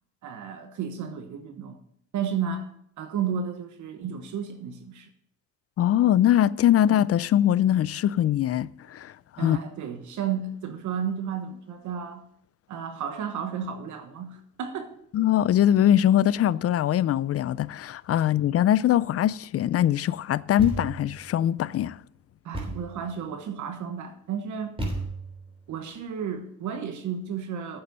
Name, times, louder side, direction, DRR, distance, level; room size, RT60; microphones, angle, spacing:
voice 1, 0.2-1.8 2.1-2.7 3.0-5.1 9.4-12.2 12.7-14.9 22.4-24.8 25.7-27.8, right 7 dB, 75° right, 1.3 m, -32 dB
voice 2, 5.8-9.6 15.1-22.0, left 11 dB, 50° left, 0.4 m, -22 dB
Thump thud, 20.6-21.1 22.5-23.0 24.8-25.5, right 2 dB, 20° right, 3.4 m, -33 dB
8.6 x 7.6 x 6.7 m
cardioid pair, 90°, 30 cm